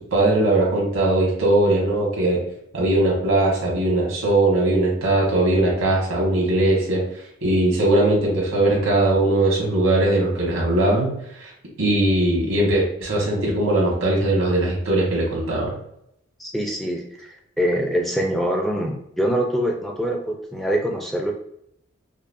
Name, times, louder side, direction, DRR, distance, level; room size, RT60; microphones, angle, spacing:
voice 1, 0.1-2.4 2.7-7.0 7.4-11.5 11.8-15.8, right 1 dB, 90° right, -3 dB, 1.4 m, -20 dB
voice 2, 16.4-17.0 17.6-21.3, equal, ahead, 1 dB, 0.4 m, -24 dB
5.2 x 2.0 x 2.6 m, 0.75 s
head